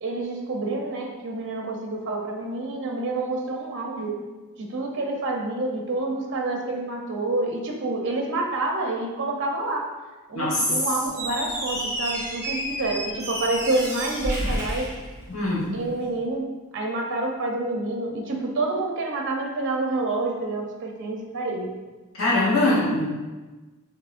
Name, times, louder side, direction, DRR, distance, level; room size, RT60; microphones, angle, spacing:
voice 1, 0.0-4.2 4.6-9.9 10.3-14.9 15.7-21.7, right 2 dB, 55° right, 1 dB, 0.7 m, -28 dB
voice 2, 10.3-10.7 15.3-15.7 22.2-23.1, left 2 dB, 65° left, -8 dB, 1.2 m, -22 dB
Squeak, 11.1-15.7, equal, 15° right, 1.3 m, -30 dB
7.3 x 2.8 x 2.5 m, 1.2 s
head